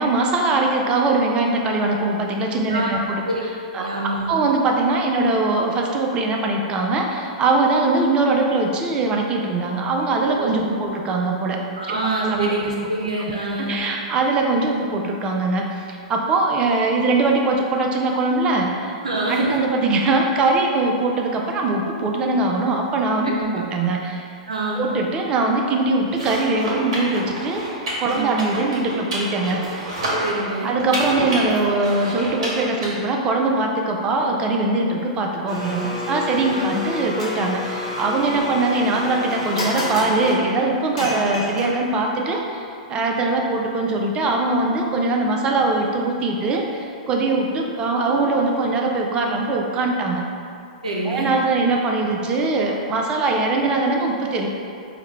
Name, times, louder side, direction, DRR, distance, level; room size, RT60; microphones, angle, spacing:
voice 1, 0.0-3.2 3.7-11.6 11.9-12.5 13.3-13.4 13.7-19.0 19.3-24.3 24.7-29.7 30.6-50.2 51.0-54.5, right 3 dB, 25° right, 1 dB, 0.4 m, -22 dB
voice 2, 2.7-3.0 3.3-3.4 3.8-4.3 10.4-10.5 10.8-10.9 11.8-13.8 19.0-19.6 23.2-23.4 24.5-24.9 28.1-28.4 30.2-30.7 36.4-36.7 38.3-38.4 50.8-51.3, right 2 dB, 80° right, -3 dB, 0.5 m, -25 dB
sound 1, 26.1-32.9, right 1 dB, 60° right, 1.0 m, -28 dB
Domestic sounds home sounds, 35.5-42.0, left 2 dB, 75° left, 1.0 m, -29 dB
4.7 x 2.2 x 3.0 m, 2.4 s
figure-of-eight pair, 105°, 4 cm